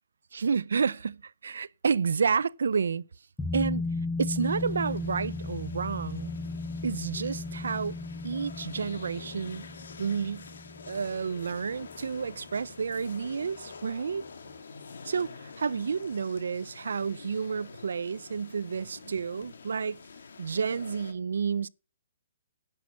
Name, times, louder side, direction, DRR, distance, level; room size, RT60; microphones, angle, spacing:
voice 1, 0.3-3.1 3.5-3.9 4.2-6.3 6.8-8.0 8.2-9.7 10.0-10.5 10.9-14.3 15.0-20.0 20.4-21.7, right 5 dB, 90° right, 0.4 m, -30 dB
sound 1, 3.4-12.5 12.8-12.9, left 3 dB, 5° left, 0.5 m, -36 dB
sound 2, 4.4-21.1, left 5 dB, 85° left, 1.8 m, -47 dB
10.5 x 6.2 x 5.4 m
hypercardioid pair, 165°, 0 cm